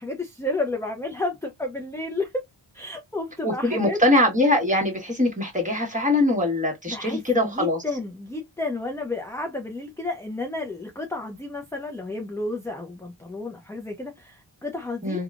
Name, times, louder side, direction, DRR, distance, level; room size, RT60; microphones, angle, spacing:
voice 1, 0.0-2.4 2.7-4.0 6.9-15.2, left 2 dB, 5° left, 0.6 m, -31 dB
voice 2, 3.4-7.8 15.0-15.2, left 1 dB, 15° right, 1.4 m, -22 dB
3.4 x 2.3 x 2.4 m
wide cardioid pair, 85°, 46 cm